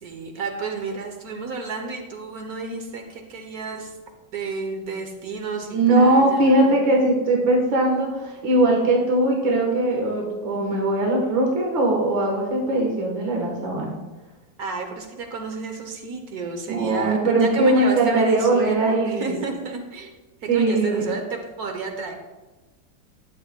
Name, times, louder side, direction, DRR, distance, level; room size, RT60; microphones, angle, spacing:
voice 1, 0.0-3.9 4.3-6.8 14.6-20.1 20.5-22.1, right 4 dB, 60° right, 4 dB, 1.2 m, -31 dB
voice 2, 5.7-14.0 16.7-19.4 20.5-21.1, right 2 dB, 75° right, 0 dB, 2.0 m, -20 dB
11.5 x 7.2 x 2.2 m, 1.1 s
omnidirectional pair, 2.1 m